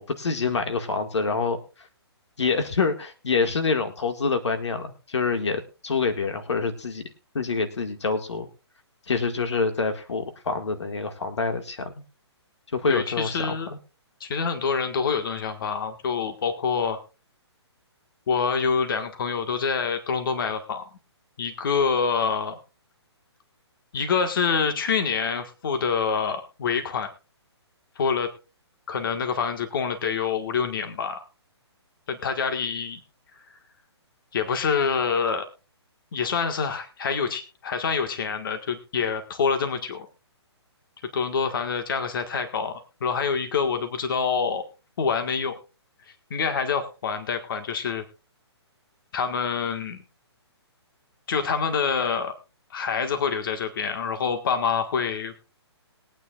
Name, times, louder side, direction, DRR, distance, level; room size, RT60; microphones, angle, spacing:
voice 1, 0.0-1.6 2.4-7.0 7.3-8.5 9.1-12.0 12.7-13.8, left 4 dB, 85° left, 7 dB, 2.0 m, -26 dB
voice 2, 12.9-13.7 14.2-17.0 18.3-20.9 21.4-22.6 23.9-27.1 28.0-28.3 28.9-31.2 32.1-33.0 34.3-35.5 36.1-40.1 41.1-44.6 45.0-45.5 46.3-48.0 49.1-50.0 51.3-52.3 52.7-55.3, left 6 dB, 50° left, 8 dB, 1.7 m, -26 dB
21.5 x 9.3 x 2.5 m, 0.32 s
hypercardioid pair, 160°, 14 cm